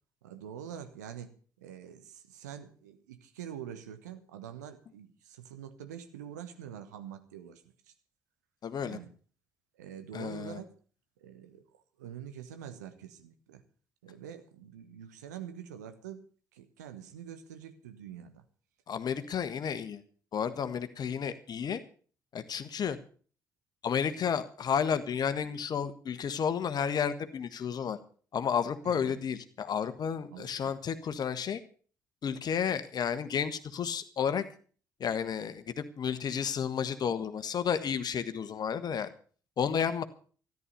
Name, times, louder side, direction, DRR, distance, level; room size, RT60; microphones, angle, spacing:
voice 1, 0.2-1.3 1.6-7.9 8.8-9.1 9.8-10.7 11.2-13.6 14.0-16.3 16.5-18.4 28.8-29.2 30.3-30.7, right 9 dB, 75° right, 9 dB, 1.2 m, -45 dB
voice 2, 8.6-9.0 10.1-10.6 18.9-20.0 20.3-21.8 22.3-23.0 23.8-28.0 28.3-31.6 32.2-34.4 35.0-39.1 39.6-40.0, left 7 dB, 45° left, 12 dB, 1.4 m, -32 dB
14.0 x 11.0 x 6.7 m, 0.43 s
figure-of-eight pair, 40°, 9 cm